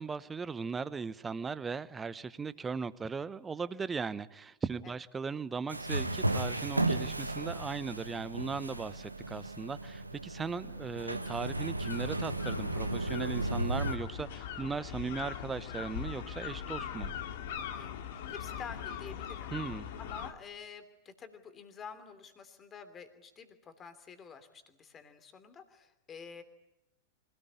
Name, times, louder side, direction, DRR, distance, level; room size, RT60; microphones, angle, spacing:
voice 1, 0.0-17.1 19.5-19.9, right 5 dB, 15° right, 17 dB, 1.0 m, -38 dB
sound 1, 5.7-13.9, right 2 dB, 85° right, 1.4 m, -34 dB
sound 2, 10.9-20.3, left 8 dB, 55° left, 2.1 m, -41 dB
voice 2, 18.3-19.5 20.0-26.4, left 6 dB, 25° left, 9 dB, 3.0 m, -49 dB
25.5 x 18.0 x 9.7 m, 0.91 s
figure-of-eight pair, 95°, 0 cm